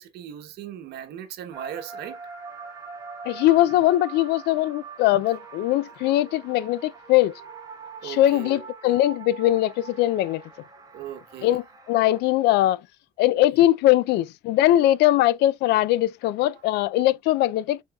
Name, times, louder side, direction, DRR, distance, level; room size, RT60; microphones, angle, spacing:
voice 1, 0.0-2.2 8.0-8.9 10.9-11.6, right 10 dB, 75° right, 1.0 m, -38 dB
sound 1, 1.5-12.2, right 5 dB, 20° right, 1.3 m, -43 dB
voice 2, 3.2-7.3 8.0-10.4 11.4-12.8 13.2-17.8, left 14 dB, 80° left, 0.4 m, -21 dB
4.6 x 4.4 x 2.3 m
cardioid pair, 110°, 17 cm